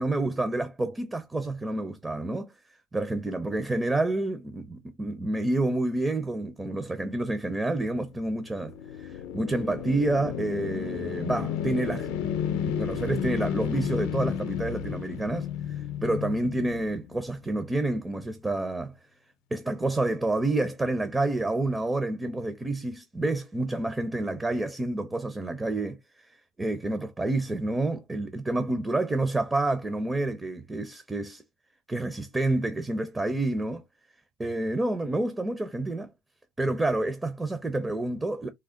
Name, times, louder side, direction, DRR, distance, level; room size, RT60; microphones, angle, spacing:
voice 1, 0.0-2.5 2.9-8.7 9.0-15.5 16.0-18.9 19.5-26.0 26.6-31.4 31.9-33.8 34.4-36.1 36.6-38.5, right 2 dB, 10° right, 0.5 m, -29 dB
sound 1, 8.1-17.4, left 9 dB, 70° left, 0.6 m, -32 dB
3.3 x 2.0 x 3.6 m
cardioid pair, 140°, 0 cm